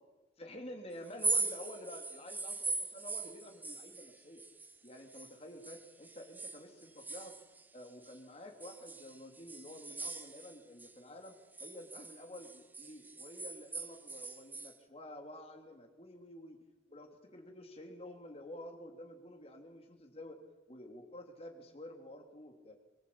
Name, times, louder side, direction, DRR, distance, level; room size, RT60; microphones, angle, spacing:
voice 1, 0.4-4.4 4.8-7.3 7.7-11.3 11.6-16.6 16.9-20.4 20.7-22.8, left 1 dB, 35° left, 3 dB, 3.2 m, -50 dB
sound 1, 1.1-5.3 5.6-8.2 8.6-10.9 11.3-14.8, right 3 dB, 10° right, 0.9 m, -40 dB
23.0 x 21.0 x 8.7 m, 1.2 s
head